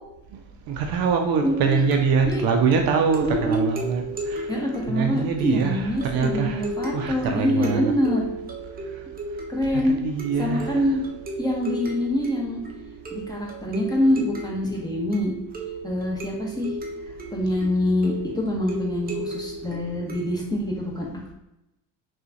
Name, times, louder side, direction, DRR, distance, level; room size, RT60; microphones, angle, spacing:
voice 1, 0.7-4.5 4.9-6.7 6.9-7.9 9.7-10.8, right 5 dB, 55° right, 4 dB, 0.6 m, -24 dB
voice 2, 1.4-1.8 2.2-2.4 3.2-3.7 4.5-8.3 9.5-10.0 10.4-11.0 11.4-12.6 13.1-15.3 15.8-16.8 17.3-21.1, left 1 dB, 10° left, -3 dB, 1.0 m, -25 dB
sound 1, 1.4-20.6, right 3 dB, 20° right, 0.8 m, -35 dB
3.7 x 2.4 x 2.8 m, 0.91 s
hypercardioid pair, 70°, 43 cm